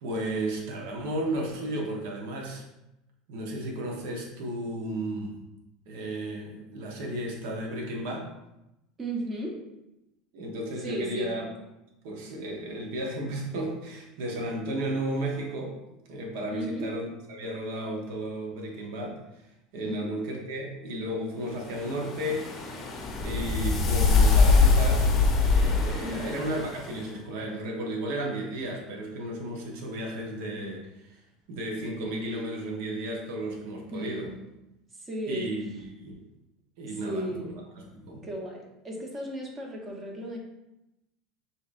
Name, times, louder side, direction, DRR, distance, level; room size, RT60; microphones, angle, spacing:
voice 1, 0.0-2.6 3.3-5.4 5.9-8.3 10.3-11.5 12.0-15.8 16.1-19.5 19.7-22.6 23.2-25.1 25.5-31.2 31.5-34.3 35.3-36.2 36.8-38.3, right 1 dB, 70° right, -1 dB, 1.0 m, -34 dB
voice 2, 9.0-9.5 10.8-11.3 16.5-16.9 19.8-20.1 26.0-26.4 33.9-34.4 35.0-35.5 37.0-37.5 38.2-40.4, equal, 20° right, 0 dB, 0.9 m, -35 dB
sound 1, 21.7-27.0, left 4 dB, 30° left, 0.7 m, -23 dB
6.6 x 2.8 x 2.5 m, 0.92 s
supercardioid pair, 145°, 0 cm